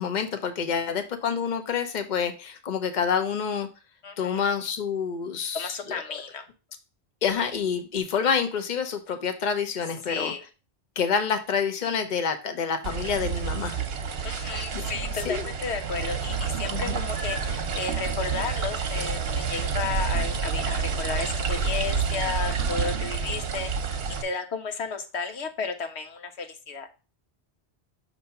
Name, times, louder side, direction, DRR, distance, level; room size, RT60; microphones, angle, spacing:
voice 1, 0.0-3.7 4.2-5.7 7.2-10.3 11.0-13.8 14.7-14.8 15.2-15.5 16.7-17.1, left 6 dB, 45° left, 7 dB, 0.9 m, -27 dB
voice 2, 4.0-4.5 5.5-6.4 10.1-10.4 14.2-26.9, left 5 dB, 80° left, 6 dB, 1.1 m, -33 dB
sound 1, 12.8-24.2, right 5 dB, 70° right, 1.0 m, -29 dB
6.5 x 3.0 x 5.7 m, 0.31 s
omnidirectional pair, 1.1 m